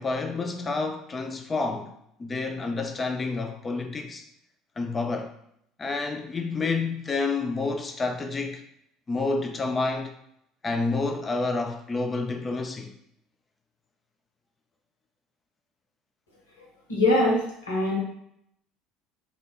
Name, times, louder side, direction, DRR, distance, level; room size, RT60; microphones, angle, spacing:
voice 1, 0.0-1.9 2.2-4.2 4.8-5.3 5.8-8.6 9.1-10.1 10.6-12.9, left 3 dB, 25° left, 0.4 m, -29 dB
voice 2, 16.9-18.0, left 1 dB, 80° left, 0.8 m, -23 dB
2.7 x 2.1 x 3.0 m
figure-of-eight pair, 65°, 0 cm